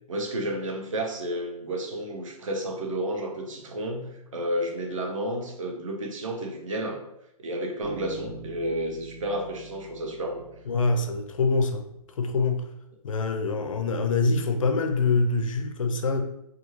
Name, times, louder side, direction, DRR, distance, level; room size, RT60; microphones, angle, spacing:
voice 1, 0.1-7.0 7.4-10.5, right 1 dB, 55° right, 2 dB, 0.6 m, -31 dB
Bass guitar, 7.8-11.6, right 3 dB, 85° right, 1.1 m, -44 dB
voice 2, 10.7-11.9 12.2-12.7 13.0-16.2, left 3 dB, 60° left, 7 dB, 0.4 m, -25 dB
2.4 x 2.3 x 3.0 m, 0.79 s
hypercardioid pair, 180°, 20 cm